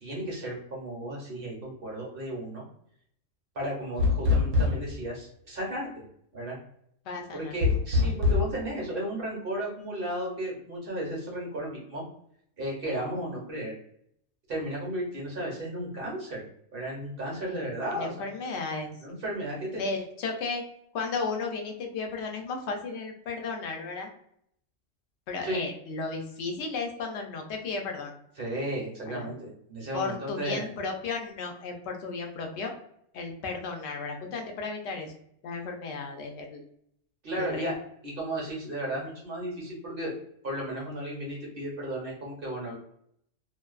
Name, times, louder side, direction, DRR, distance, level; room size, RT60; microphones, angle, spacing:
voice 1, 0.0-2.6 3.5-5.9 6.3-6.6 7.3-12.0 12.6-13.7 14.5-16.4 16.7-18.1 19.0-19.8 25.4-25.6 28.4-30.7 37.2-37.7 38.0-40.1 40.4-42.7, right 1 dB, 50° right, -3 dB, 0.9 m, -34 dB
sound 1, 4.0-5.0 7.6-8.5, left 4 dB, 80° right, 1.0 m, -23 dB
voice 2, 7.1-7.6 17.5-17.6 17.9-18.9 19.8-20.6 20.9-24.1 25.3-28.1 29.0-29.3 29.9-32.7 33.1-35.1 35.4-36.6 37.3-37.8 39.0-39.1, left 4 dB, 65° left, 2 dB, 0.8 m, -34 dB
2.5 x 2.2 x 2.3 m, 0.69 s
omnidirectional pair, 1.3 m